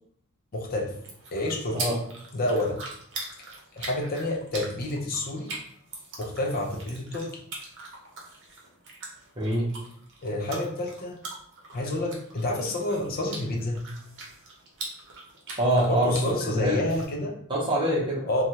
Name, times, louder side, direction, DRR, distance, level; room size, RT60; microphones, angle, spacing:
voice 1, 0.5-0.9 1.3-1.8 2.3-2.8 3.4-3.5 3.7-5.5 6.2-7.3 10.2-11.2 11.7-13.8 15.9-17.3 18.3-18.4, left 1 dB, 45° left, 1 dB, 0.6 m, -29 dB
sound 1, 0.9-17.1, right 2 dB, 55° right, 0.8 m, -42 dB
voice 2, 9.4-9.7 15.6-16.1 16.4-16.8 17.5-18.2, right 1 dB, 25° right, -5 dB, 0.7 m, -24 dB
3.1 x 2.3 x 2.7 m, 0.65 s
head